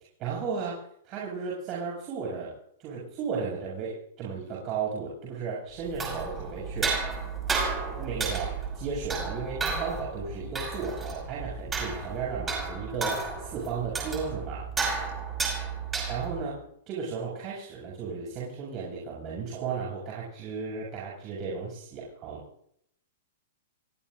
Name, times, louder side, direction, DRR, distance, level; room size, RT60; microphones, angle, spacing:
voice 1, 0.2-0.8 1.0-2.5 2.8-7.0 8.0-14.7 16.1-22.4, right 5 dB, 35° right, -4 dB, 7.4 m, -34 dB
sound 1, 5.8-16.5, right 4 dB, 15° right, 6.0 m, -32 dB
29.0 x 16.0 x 2.7 m, 0.72 s
hypercardioid pair, 130°, 0 cm